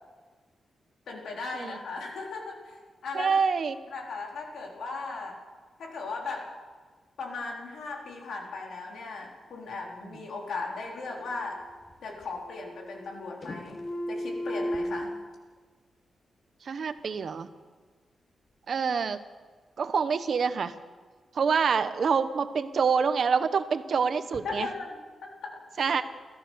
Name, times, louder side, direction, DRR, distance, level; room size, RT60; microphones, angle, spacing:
voice 1, 1.1-2.8 3.0-3.3 3.9-5.3 5.8-6.5 7.2-11.6 12.0-13.8 14.1-15.1 24.4-25.9, left 3 dB, 80° left, 0 dB, 4.1 m, -37 dB
voice 2, 3.1-3.8 16.6-17.5 18.7-19.2 19.8-20.7 21.3-24.7 25.8-26.0, right 6 dB, 50° right, 11 dB, 1.1 m, -26 dB
sound 1, 11.0-11.9 12.2-13.2 13.4-15.0, equal, 35° left, 2.7 m, -35 dB
29.0 x 14.0 x 6.5 m, 1.4 s
wide cardioid pair, 165°, 0 cm